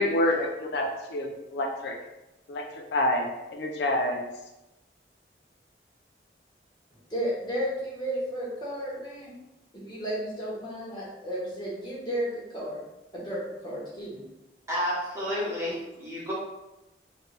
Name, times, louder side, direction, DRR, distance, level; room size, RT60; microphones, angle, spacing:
voice 1, 0.0-2.0 2.5-4.3, left 1 dB, 70° left, 3 dB, 0.4 m, -28 dB
voice 2, 7.1-9.3 9.7-12.8 13.1-14.2, equal, 25° left, -6 dB, 1.0 m, -33 dB
voice 3, 14.7-16.3, equal, 15° right, -8 dB, 1.0 m, -30 dB
3.2 x 2.5 x 3.3 m, 0.99 s
head